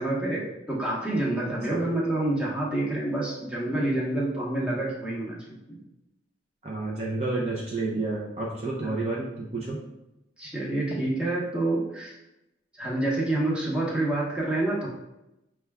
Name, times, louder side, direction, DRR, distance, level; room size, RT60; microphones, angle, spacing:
voice 1, 0.0-5.4 8.8-8.9 10.4-12.1 12.8-14.9, right 2 dB, 5° right, -5 dB, 0.8 m, -27 dB
voice 2, 6.6-9.8, right 3 dB, 35° right, -4 dB, 0.5 m, -30 dB
5.7 x 2.3 x 3.4 m, 0.92 s
head